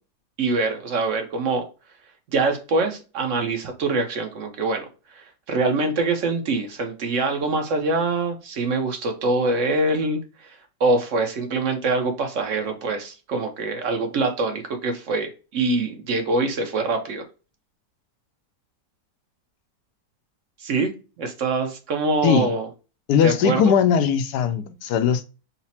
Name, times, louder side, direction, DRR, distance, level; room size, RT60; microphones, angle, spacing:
voice 1, 0.4-1.7 2.3-4.9 5.1-10.5 10.8-17.2 20.6-20.9 21.2-22.7 23.2-23.7, right 3 dB, 55° right, 1.0 m, -24 dB
voice 2, 22.2-22.5 23.1-25.3, left 7 dB, 75° left, 1.1 m, -20 dB
4.0 x 2.1 x 4.1 m
omnidirectional pair, 1.9 m